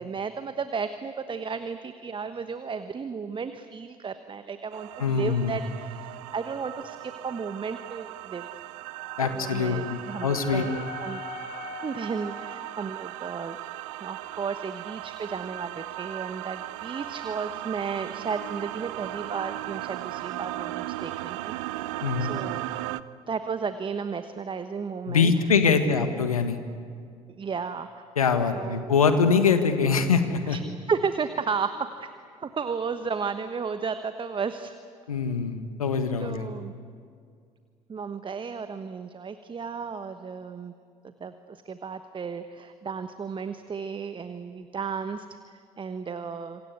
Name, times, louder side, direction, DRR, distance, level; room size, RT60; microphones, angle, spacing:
voice 1, 0.0-8.5 9.2-11.2 11.8-13.6 14.0-21.8 22.2-22.6 23.3-25.5 25.8-26.2 27.3-28.0 28.5-28.9 30.5-30.6 30.9-32.1 32.4-34.7 36.2-36.7 37.9-40.7 41.0-46.6, right 5 dB, 30° right, 10 dB, 1.2 m, -34 dB
sound 1, 4.7-23.0, right 17 dB, 65° right, 0.7 m, -37 dB
voice 2, 5.0-5.6 9.2-10.6 22.0-22.3 25.1-26.6 28.2-30.6 35.1-36.5, left 5 dB, 80° left, 9 dB, 1.6 m, -23 dB
Wind instrument woodwind instrument, 9.0-13.2, left 5 dB, 45° left, 4.3 m, -43 dB
27.0 x 25.0 x 8.2 m, 2.2 s
figure-of-eight pair, 55°, 18 cm